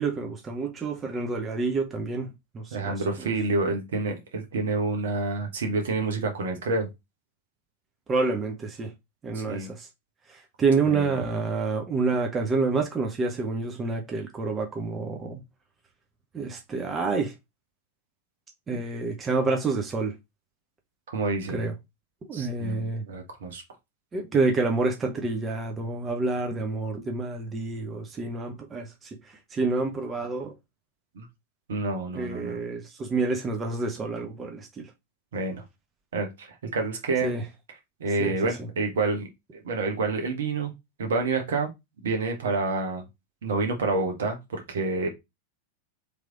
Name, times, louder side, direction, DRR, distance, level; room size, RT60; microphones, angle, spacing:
voice 1, 0.0-2.3 2.5-3.3 8.1-8.9 9.2-9.9 10.3-15.4 16.3-17.3 18.7-20.2 21.5-21.7 22.3-23.0 24.1-30.5 32.1-34.9 37.2-37.4 38.2-38.5, right 3 dB, 20° right, 0.8 m, -28 dB
voice 2, 2.7-6.9 9.3-9.7 10.9-11.2 21.1-21.6 22.3-23.6 31.1-31.3 31.7-32.6 35.3-35.6 36.1-37.3 38.0-39.3 39.5-40.7 41.0-41.7 42.0-43.0 43.4-45.1, right 3 dB, 60° right, 1.2 m, -28 dB
3.3 x 3.1 x 3.7 m
figure-of-eight pair, 90°, 0 cm